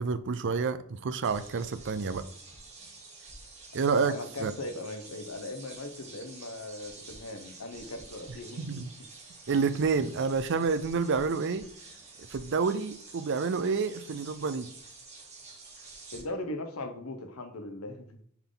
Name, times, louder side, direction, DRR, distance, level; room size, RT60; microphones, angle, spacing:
voice 1, 0.0-2.2 3.7-4.1 4.4-4.5 8.6-8.9 9.5-11.7 12.3-14.7, right 5 dB, 55° right, 13 dB, 0.5 m, -28 dB
sound 1, 1.2-16.2, right 3 dB, 35° right, 2.1 m, -49 dB
voice 2, 4.0-8.8 16.1-18.2, left 2 dB, 75° left, 6 dB, 1.0 m, -39 dB
7.0 x 4.0 x 3.8 m, 0.64 s
head